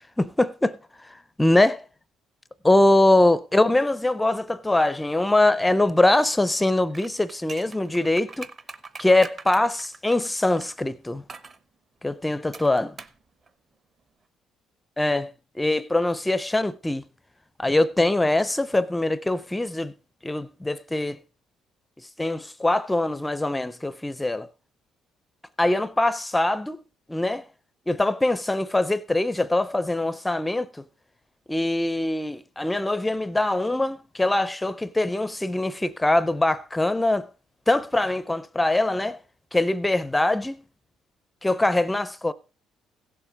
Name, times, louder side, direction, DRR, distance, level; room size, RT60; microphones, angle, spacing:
voice 1, 0.2-0.8 1.0-1.8 2.6-8.5 9.0-11.2 12.0-12.9 15.0-15.3 15.6-17.0 17.6-19.9 20.2-21.2 22.2-24.5 25.6-26.8 27.1-27.4 27.9-30.8 31.5-37.3 37.7-39.2 39.5-40.6 41.4-42.3, left 2 dB, 10° left, 0.5 m, -23 dB
sound 1, 6.9-10.7 11.3-11.6 12.5-13.2 13.5-13.6, right 4 dB, 30° right, 0.8 m, -42 dB
16.0 x 7.2 x 5.0 m
cardioid pair, 150°, 0 cm